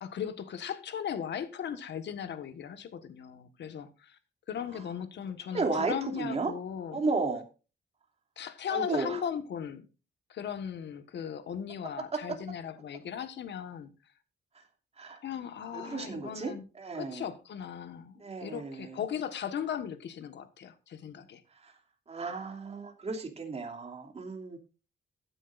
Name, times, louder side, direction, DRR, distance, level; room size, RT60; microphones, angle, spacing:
voice 1, 0.0-4.2 4.5-7.0 8.4-9.9 10.3-13.9 15.2-16.7 16.9-21.4, left 8 dB, 70° left, 1.5 m, -37 dB
voice 2, 5.5-6.5 6.9-7.4 8.7-9.2 12.1-12.2 15.0-15.2 15.7-17.2 18.2-19.0 21.5-21.7 22.1-24.6, right 3 dB, 35° right, 2.8 m, -33 dB
15.0 x 10.0 x 2.6 m
cardioid pair, 120°, 19 cm